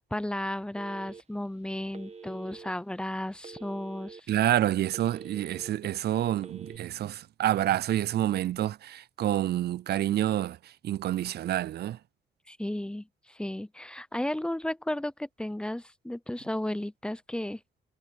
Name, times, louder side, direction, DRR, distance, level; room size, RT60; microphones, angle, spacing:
voice 1, 0.0-4.3 12.5-17.6, left 1 dB, 5° left, 0.7 m, -34 dB
Telephone, 0.8-1.5 1.9-2.7 3.4-4.2 4.6-5.7 6.3-6.8, right 5 dB, 30° right, 1.6 m, -46 dB
voice 2, 4.3-10.6 10.8-12.0, right 12 dB, 55° right, 0.4 m, -28 dB
cardioid pair, 90°, 20 cm